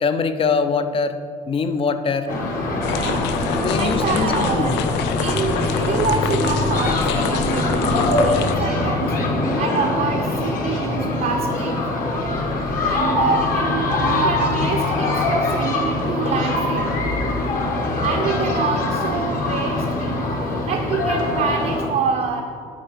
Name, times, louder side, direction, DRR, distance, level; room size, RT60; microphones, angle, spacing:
voice 1, 0.0-1.2 1.5-2.3 3.6-4.9, left 5 dB, 35° left, 10 dB, 0.5 m, -22 dB
sound 1, 2.3-21.9, left 2 dB, 55° left, 1.4 m, -22 dB
sound 2, 2.8-8.5, left 8 dB, 90° left, 0.4 m, -27 dB
voice 2, 2.8-4.8 5.2-9.2 9.6-11.8 12.8-17.1 18.0-22.4, right 5 dB, 55° right, 2 dB, 0.7 m, -26 dB
9.1 x 3.7 x 6.6 m, 2.3 s
cardioid pair, 110°, 17 cm